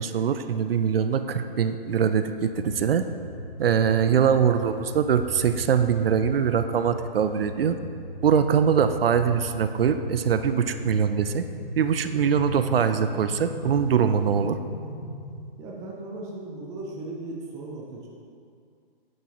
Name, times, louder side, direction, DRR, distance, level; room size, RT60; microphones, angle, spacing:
voice 1, 0.0-3.0 3.6-7.8 8.2-11.4 11.8-14.6, right 7 dB, 75° right, 10 dB, 0.5 m, -23 dB
sound 1, 2.5-15.4, left 2 dB, 70° left, 1.6 m, -37 dB
voice 2, 15.6-18.1, right 2 dB, 10° right, -2 dB, 0.5 m, -37 dB
9.3 x 6.1 x 2.9 m, 2.3 s
hypercardioid pair, 140°, 30 cm